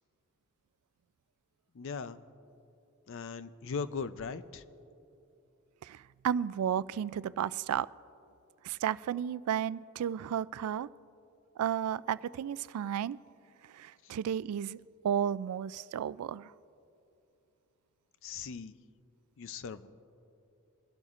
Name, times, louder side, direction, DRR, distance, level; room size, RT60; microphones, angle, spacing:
voice 1, 1.7-2.2 3.1-4.6 14.0-14.1 18.2-18.8 19.4-19.9, left 5 dB, 60° left, 13 dB, 0.5 m, -39 dB
voice 2, 5.8-7.9 8.6-10.9 11.6-13.2 13.6-14.8 15.0-16.5, right 9 dB, 85° right, 17 dB, 0.3 m, -33 dB
23.0 x 12.0 x 2.5 m, 2.8 s
head